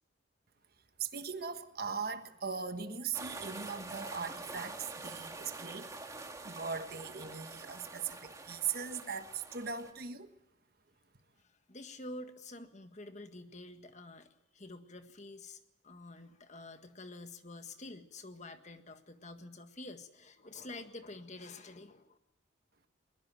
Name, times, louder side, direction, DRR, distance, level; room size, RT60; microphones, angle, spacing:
voice 1, 1.0-5.9 6.4-10.3, right 6 dB, 50° right, 1.4 m, -39 dB
sound 1, 3.1-9.9, right 3 dB, 15° right, 2.1 m, -46 dB
voice 2, 11.4-22.2, left 2 dB, 35° left, 1.7 m, -48 dB
22.0 x 21.0 x 7.7 m
head